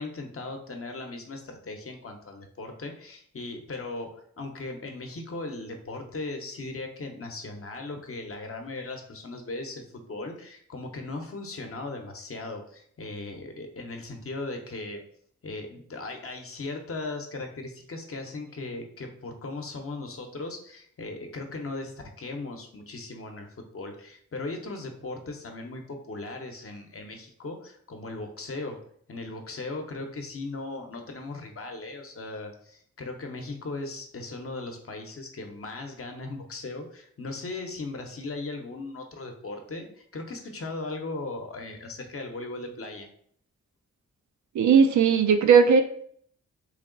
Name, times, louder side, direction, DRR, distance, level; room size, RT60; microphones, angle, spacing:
voice 1, 0.0-15.0 15.4-28.8 29.1-43.1, left 2 dB, 50° left, 4 dB, 0.8 m, -38 dB
voice 2, 44.5-45.8, right 6 dB, 75° right, 7 dB, 0.6 m, -17 dB
3.2 x 2.8 x 3.8 m, 0.62 s
wide cardioid pair, 90°, 30 cm